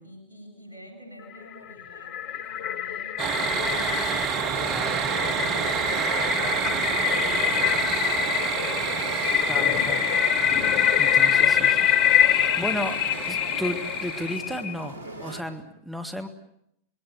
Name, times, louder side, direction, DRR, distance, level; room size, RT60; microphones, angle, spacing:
voice 1, 0.0-5.8 6.3-9.1 9.7-10.1 11.0-13.0 13.4-13.7, equal, 75° right, 5 dB, 7.6 m, -48 dB
sound 1, 1.4-14.8, left 10 dB, 40° left, 0.9 m, -25 dB
sound 2, 3.2-14.4, right 7 dB, 35° right, 1.2 m, -29 dB
sound 3, 4.3-15.4, right 1 dB, 80° left, 2.8 m, -41 dB
voice 2, 4.7-5.0 9.5-10.1 11.0-11.8 12.3-13.0 13.3-16.3, equal, ahead, 7 dB, 2.2 m, -33 dB
27.0 x 20.5 x 8.2 m, 0.74 s
figure-of-eight pair, 90°, 0 cm